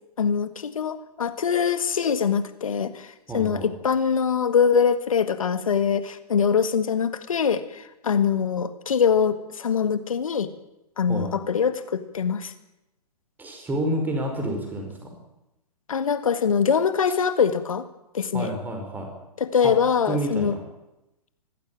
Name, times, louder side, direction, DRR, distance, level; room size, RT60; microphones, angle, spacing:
voice 1, 0.2-10.5 11.0-12.5 15.9-17.9 18.1-18.5 19.4-20.5, left 6 dB, 60° left, 12 dB, 1.8 m, -23 dB
voice 2, 3.3-3.7 11.1-11.3 13.4-15.2 18.3-19.1 19.6-19.7 20.1-20.5, right 1 dB, 10° right, 3 dB, 4.9 m, -29 dB
19.5 x 15.0 x 8.9 m, 0.93 s
figure-of-eight pair, 120°, 20 cm